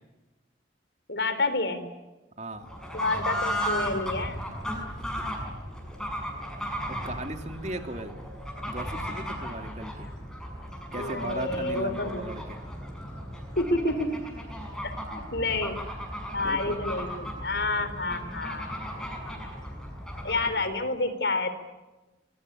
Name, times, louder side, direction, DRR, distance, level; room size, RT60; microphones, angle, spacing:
voice 1, 1.1-1.8 2.9-4.4 11.0-12.2 13.6-14.1 14.8-15.8 16.3-18.8 20.2-21.5, left 2 dB, 70° left, 11 dB, 3.9 m, -29 dB
voice 2, 2.4-2.7 6.9-8.1 8.7-10.1 10.9-12.6 16.4-16.8, right 1 dB, 40° right, 6 dB, 2.7 m, -37 dB
Fowl / Bird, 2.6-20.7, equal, 5° left, 6.3 m, -36 dB
26.0 x 23.5 x 8.7 m, 1.1 s
head